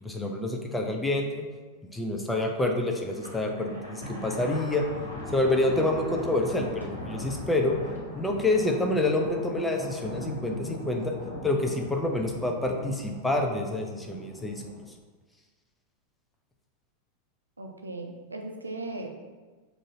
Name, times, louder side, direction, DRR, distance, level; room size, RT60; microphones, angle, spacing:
voice 1, 0.0-1.5 1.9-4.8 5.3-7.8 8.1-11.1 11.4-14.6, left 2 dB, 5° left, 1 dB, 0.5 m, -27 dB
Thunder, 3.1-14.8, left 1 dB, 85° left, 1.3 m, -40 dB
voice 2, 17.6-19.1, right 2 dB, 80° right, 4 dB, 0.5 m, -37 dB
3.7 x 2.6 x 4.2 m, 1.3 s
figure-of-eight pair, 90°, 0 cm